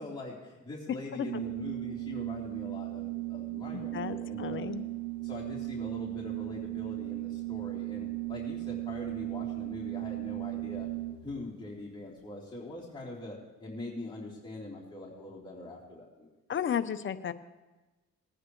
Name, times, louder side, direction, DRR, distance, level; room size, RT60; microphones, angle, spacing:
voice 1, 0.0-4.6 5.2-10.9 11.2-16.3, left 2 dB, 15° left, -7 dB, 3.5 m, -43 dB
Organ, 1.2-11.4, right 19 dB, 70° right, 3.5 m, -37 dB
voice 2, 3.7-4.9 16.5-17.3, left 8 dB, 40° left, 10 dB, 0.8 m, -34 dB
20.0 x 9.9 x 3.2 m, 1.1 s
cardioid pair, 90°, 30 cm